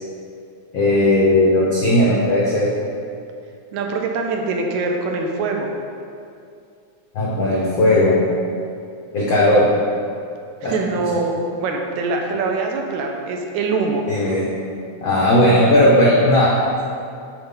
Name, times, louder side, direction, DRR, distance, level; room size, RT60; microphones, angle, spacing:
voice 1, 0.7-2.7 7.1-8.2 9.1-9.7 10.6-10.7 14.1-14.5 15.0-16.6, left 1 dB, 80° left, -4 dB, 1.1 m, -16 dB
voice 2, 3.7-5.7 10.6-14.0, right 3 dB, 80° right, 2 dB, 2.0 m, -23 dB
9.7 x 4.9 x 3.8 m, 2.4 s
omnidirectional pair, 3.5 m